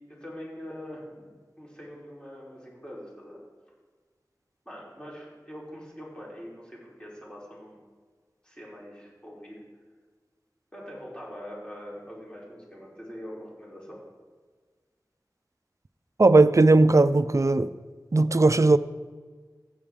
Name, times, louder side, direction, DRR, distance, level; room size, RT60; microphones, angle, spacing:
voice 1, 0.2-1.3 1.6-3.4 4.7-7.8 8.4-9.6 10.7-14.0, equal, 15° left, 3.5 m, -43 dB
voice 2, 16.2-17.7 18.1-18.8, right 2 dB, 45° right, 0.4 m, -18 dB
15.5 x 8.2 x 3.6 m
wide cardioid pair, 50°, 7 cm